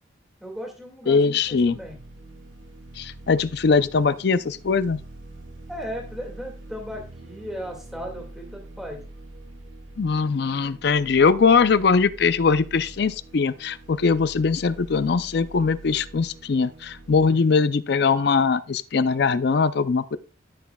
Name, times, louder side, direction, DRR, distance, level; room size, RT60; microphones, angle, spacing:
voice 1, 0.4-2.0 5.7-9.0 17.2-17.4, equal, ahead, 2.0 m, -36 dB
voice 2, 1.1-1.8 3.0-5.0 10.0-20.2, left 5 dB, 55° left, 0.4 m, -21 dB
sound 1, 1.4-17.3, right 2 dB, 85° right, 1.5 m, -44 dB
13.0 x 6.1 x 2.3 m
head